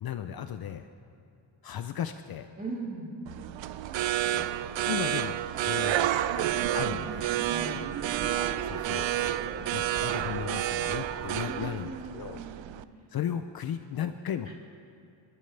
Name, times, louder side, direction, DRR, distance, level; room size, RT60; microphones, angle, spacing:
voice 1, 0.0-0.9 1.6-2.5 4.3-4.5 4.9-7.4 8.6-9.1 9.7-11.9 12.1-12.4 13.1-14.5, left 9 dB, 50° left, 9 dB, 0.5 m, -36 dB
voice 2, 2.6-3.1 7.5-7.9 11.4-12.7 14.4-14.5, right 2 dB, 20° right, -4 dB, 3.1 m, -39 dB
sound 1, 3.3-12.8, right 12 dB, 70° right, 0.6 m, -30 dB
sound 2, 6.5-11.7, right 6 dB, 35° right, 0.7 m, -40 dB
29.0 x 13.0 x 3.3 m, 2.7 s
wide cardioid pair, 170°, 47 cm